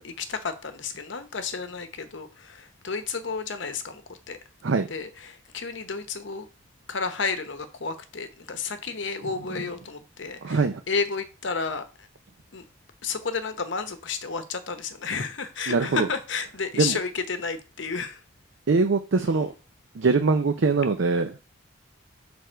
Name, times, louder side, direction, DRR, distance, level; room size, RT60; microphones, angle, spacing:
voice 1, 0.0-4.4 4.9-6.5 6.9-12.1 12.5-12.6 13.0-18.2, left 5 dB, 65° left, 0.8 m, -32 dB
voice 2, 10.4-10.8 15.7-16.1 16.8-17.0 18.7-19.5 20.0-21.4, right 4 dB, 65° right, 0.5 m, -22 dB
6.3 x 3.4 x 4.5 m
head